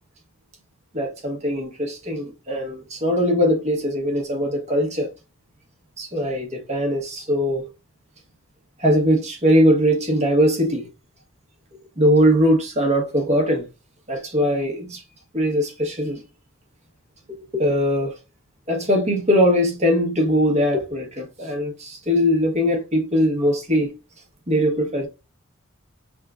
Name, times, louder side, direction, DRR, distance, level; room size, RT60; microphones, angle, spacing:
voice 1, 0.9-5.1 6.0-7.7 8.8-10.9 12.0-13.7 14.1-15.0 15.3-16.2 17.3-18.2 18.7-23.9 24.5-25.1, equal, 30° right, 1.2 m, -21 dB
5.5 x 3.5 x 2.4 m
head